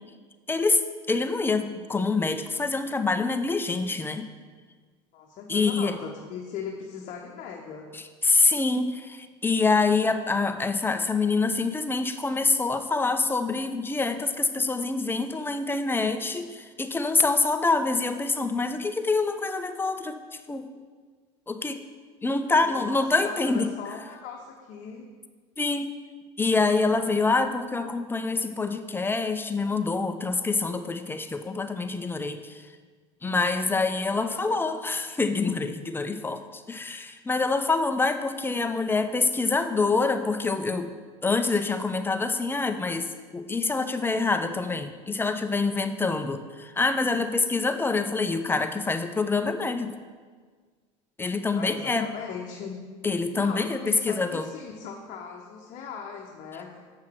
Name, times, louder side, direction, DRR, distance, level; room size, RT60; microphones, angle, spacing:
voice 1, 0.5-0.8 1.1-4.3 5.5-6.0 7.9-20.2 20.5-20.7 21.5-21.8 22.2-23.7 25.6-25.9 26.4-32.6 33.2-40.9 41.2-43.1 43.3-49.9 51.2-52.1 53.0-54.5, left 3 dB, 15° left, 8 dB, 0.6 m, -26 dB
voice 2, 5.1-7.9 22.5-25.1 34.3-34.6 51.5-52.8 53.3-56.8, left 6 dB, 55° left, 1 dB, 0.9 m, -39 dB
7.6 x 5.7 x 4.6 m, 1.5 s
supercardioid pair, 90°, 16 cm